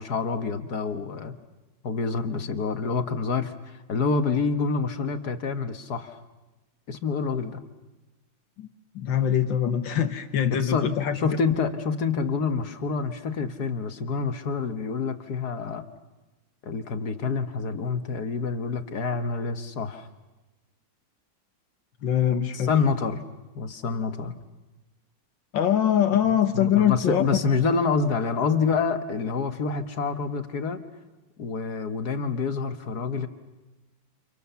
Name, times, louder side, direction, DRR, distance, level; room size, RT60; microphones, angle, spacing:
voice 1, 0.0-1.3 1.8-6.2 6.9-7.6 10.6-10.9 11.1-15.9 16.6-20.1 22.5-23.2 23.6-24.3 26.5-30.8 31.4-33.3, left 5 dB, 55° left, 8 dB, 1.8 m, -27 dB
voice 2, 9.0-11.2 22.0-22.7 25.5-27.2, left 9 dB, 75° left, 8 dB, 1.9 m, -23 dB
29.5 x 28.0 x 7.0 m, 1.1 s
omnidirectional pair, 2.1 m